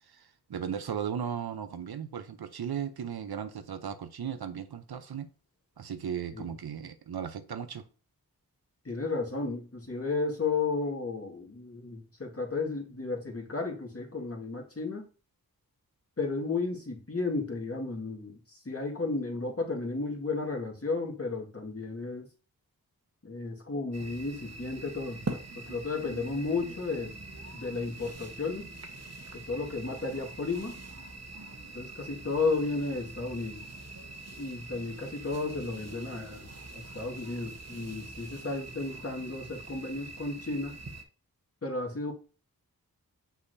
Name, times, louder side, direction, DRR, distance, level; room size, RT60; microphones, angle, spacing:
voice 1, 0.1-5.3 5.8-7.8, right 8 dB, 85° right, 0.7 m, -36 dB
voice 2, 8.8-15.0 16.2-22.3 23.2-25.2 25.6-27.2 27.5-28.7 29.3-30.7 31.7-33.6 34.4-40.8 41.6-42.1, left 3 dB, 40° left, 1.9 m, -33 dB
sound 1, 23.9-41.0, right 2 dB, 45° right, 1.1 m, -44 dB
6.3 x 5.6 x 2.7 m
cardioid pair, 45°, 37 cm